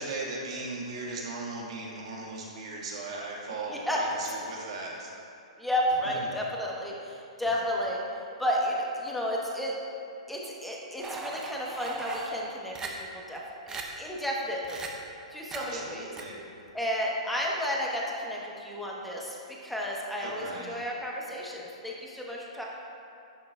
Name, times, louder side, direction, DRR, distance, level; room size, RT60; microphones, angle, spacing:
voice 1, 0.0-5.1 15.5-16.4 20.2-20.7, right 3 dB, 65° right, -3 dB, 1.7 m, -37 dB
voice 2, 3.7-4.0 5.6-8.0 8.4-9.8 10.3-13.4 13.7-14.8 15.3-16.1 16.7-22.6, equal, ahead, -3 dB, 1.1 m, -32 dB
sound 1, 11.0-12.3 12.7-12.9 13.3-13.4 13.7-13.8 14.6-14.9 15.5-15.6 16.2-16.3, right 4 dB, 15° right, 0.7 m, -38 dB
10.5 x 6.5 x 2.4 m, 2.6 s
hypercardioid pair, 130°, 3 cm